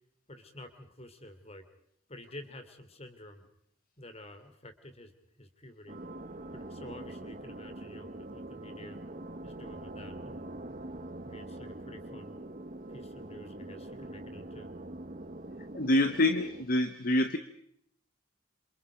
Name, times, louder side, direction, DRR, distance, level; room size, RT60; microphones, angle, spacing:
voice 1, 0.3-1.6 2.1-3.4 4.0-5.1 5.4-6.0 6.5-9.0 9.4-10.6 11.2-12.4 12.9-14.7, left 1 dB, 30° left, 9 dB, 2.9 m, -50 dB
sound 1, 5.9-16.6, right 1 dB, 40° right, 1.1 m, -44 dB
voice 2, 15.7-17.4, left 1 dB, 45° left, 10 dB, 1.1 m, -26 dB
27.5 x 27.5 x 5.1 m, 0.70 s
head